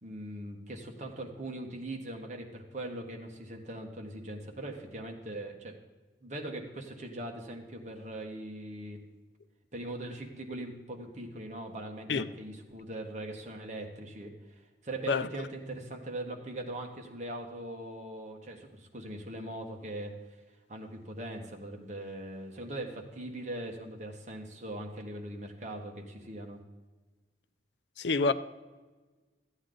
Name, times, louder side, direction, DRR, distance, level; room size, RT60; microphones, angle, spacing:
voice 1, 0.0-5.7 6.2-9.0 9.7-20.1 20.7-26.6, right 1 dB, 45° right, 1.4 m, -41 dB
voice 2, 28.0-28.3, left 4 dB, 80° left, 0.5 m, -27 dB
13.5 x 8.9 x 3.9 m
head